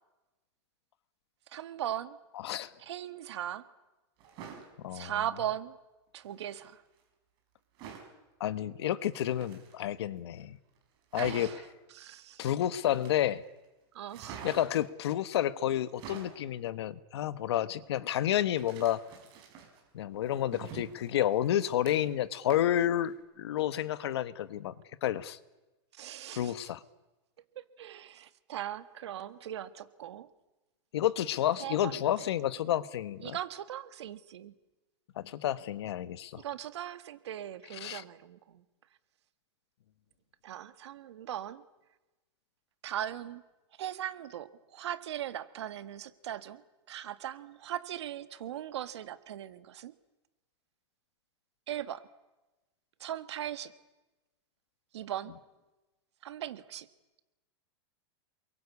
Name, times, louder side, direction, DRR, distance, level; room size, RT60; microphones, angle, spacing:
voice 1, 1.5-2.2 2.8-3.6 4.9-5.8 6.1-6.8 11.1-11.6 11.9-12.5 13.9-14.4 26.0-26.5 27.5-30.3 31.6-32.0 33.2-34.5 36.3-38.6 40.4-41.6 42.8-43.4 43.8-46.6 46.9-49.9 51.7-52.0 53.0-53.7 54.9-55.3 56.2-56.9, right 11 dB, 75° right, 12 dB, 1.7 m, -39 dB
sound 1, 4.2-4.7 6.2-6.7 7.8-8.1 9.0-10.0 10.4-10.5 10.8-10.9 11.1-11.7 12.8-13.5 14.1-14.9 15.8-16.4 18.6-19.8 20.2-22.2 22.5-22.8 23.2-23.3, right 7 dB, 30° right, 5.7 m, -47 dB
voice 2, 4.8-5.2 8.4-10.6 11.1-11.5 12.4-13.4 14.4-19.0 19.9-24.7 25.0-25.4 26.4-26.8 30.9-33.4 35.2-36.4 37.7-38.0, left 11 dB, 70° left, 14 dB, 1.4 m, -30 dB
28.5 x 23.0 x 8.5 m, 1.1 s
supercardioid pair, 170°, 14 cm